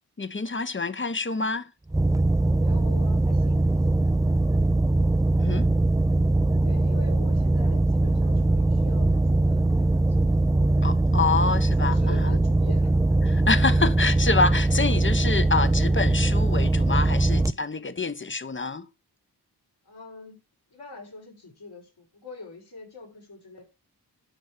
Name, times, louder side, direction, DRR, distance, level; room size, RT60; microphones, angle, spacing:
voice 1, 0.2-1.7 5.4-5.7 10.8-12.4 13.2-18.9, left 4 dB, 30° left, 1.1 m, -27 dB
sound 1, 1.9-17.5, right 2 dB, 10° right, 0.6 m, -21 dB
voice 2, 2.6-4.0 4.9-5.1 6.6-10.5 11.1-13.3 17.3-17.6 19.8-20.4 20.7-23.6, left 3 dB, 75° left, 5.9 m, -45 dB
11.5 x 5.4 x 6.7 m
cardioid pair, 45°, 40 cm